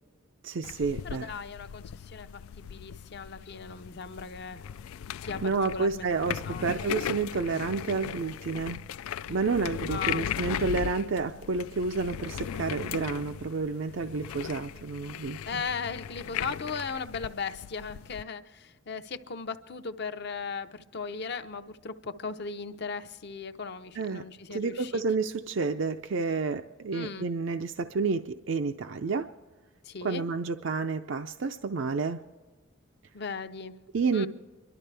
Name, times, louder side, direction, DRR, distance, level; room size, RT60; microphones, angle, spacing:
voice 1, 0.4-1.3 5.4-8.8 9.3-15.4 24.0-24.2 24.5-29.3 30.0-32.2 33.9-34.3, right 4 dB, 65° right, 7 dB, 0.5 m, -30 dB
sound 1, 0.6-18.2, left 9 dB, 90° left, 0.3 m, -38 dB
voice 2, 1.0-4.6 5.2-6.7 9.9-10.3 15.5-25.0 26.9-27.3 29.8-30.3 33.1-33.8 34.1-34.3, left 5 dB, 50° left, 9 dB, 0.7 m, -37 dB
27.0 x 12.0 x 3.3 m, 1.4 s
head